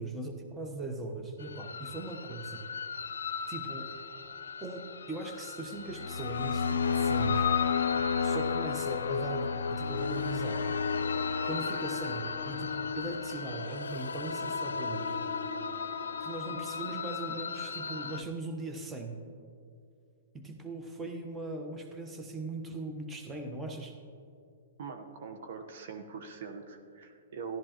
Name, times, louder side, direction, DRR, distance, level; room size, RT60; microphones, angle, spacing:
voice 1, 0.0-2.6 3.5-3.9 4.6-7.5 8.2-10.7 11.4-15.2 16.2-19.2 20.3-23.9, right 2 dB, 15° right, 3 dB, 1.0 m, -39 dB
sound 1, 1.4-18.2, left 6 dB, 80° left, 0.5 m, -33 dB
voice 2, 24.8-27.6, right 5 dB, 60° right, 5 dB, 1.1 m, -42 dB
14.0 x 12.0 x 3.0 m, 2.4 s
hypercardioid pair, 120°, 0 cm